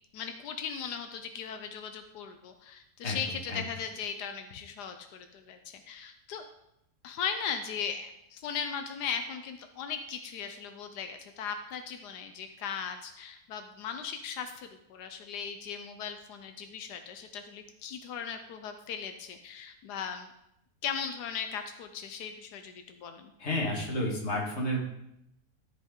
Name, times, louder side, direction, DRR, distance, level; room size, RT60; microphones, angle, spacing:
voice 1, 0.1-6.5 7.0-20.3 20.8-23.3, left 7 dB, 90° left, 7 dB, 1.3 m, -38 dB
voice 2, 23.4-24.9, equal, 45° left, -1 dB, 2.0 m, -31 dB
13.0 x 5.4 x 3.7 m, 0.80 s
omnidirectional pair, 1.7 m